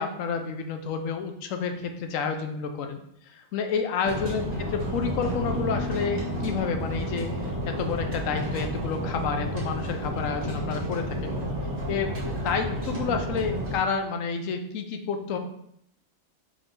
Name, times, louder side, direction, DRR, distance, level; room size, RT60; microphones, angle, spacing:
voice 1, 0.0-3.0 3.3-11.4 11.9-15.4, left 5 dB, 70° left, 5 dB, 1.0 m, -30 dB
sound 1, 4.0-13.8, equal, 90° right, 1.6 m, -31 dB
sound 2, 5.2-9.0, left 5 dB, 45° left, 1.1 m, -38 dB
4.9 x 2.7 x 3.6 m, 0.71 s
omnidirectional pair, 1.5 m